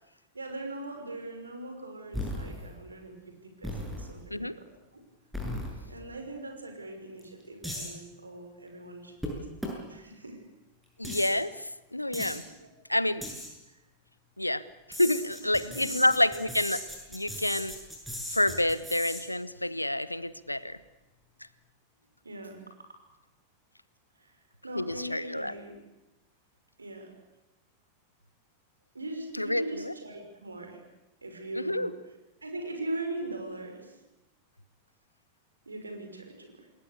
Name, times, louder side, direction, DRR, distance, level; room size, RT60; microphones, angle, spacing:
voice 1, 0.3-3.2 3.4-4.6 4.9-5.0 5.9-9.5 9.9-10.4 12.4-12.7 13.7-13.8 15.4-16.1 22.2-22.6 24.2-24.4 24.6-25.8 26.8-27.1 28.9-30.8 31.2-31.9 32.4-34.0 35.7-36.7, right 2 dB, 80° right, 4 dB, 5.8 m, -40 dB
sound 1, 2.1-2.7 3.6-4.2 5.3-6.0 7.2-7.3 7.6-7.9 9.2-9.3 9.6-9.7 11.0-11.3 12.1-12.4 13.2-13.5 14.9-19.2, left 1 dB, ahead, 7.8 m, -37 dB
voice 2, 11.0-12.4 12.9-13.3 14.4-14.6 15.0-16.8 17.1-17.8 18.3-20.8 24.7-25.5 29.4-29.9 31.5-31.9, left 1 dB, 85° left, 17 dB, 1.0 m, -28 dB
28.0 x 20.5 x 8.3 m, 0.98 s
figure-of-eight pair, 90°, 0 cm